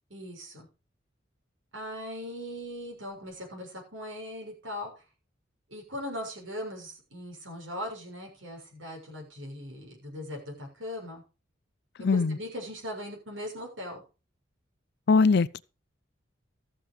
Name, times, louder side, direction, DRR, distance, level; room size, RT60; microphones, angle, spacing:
voice 1, 0.1-0.7 1.7-5.0 5.7-11.2 12.1-14.0, equal, 80° right, 6.8 m, -39 dB
voice 2, 12.0-12.4 15.1-15.6, left 4 dB, 60° left, 0.5 m, -21 dB
14.0 x 7.5 x 5.1 m
head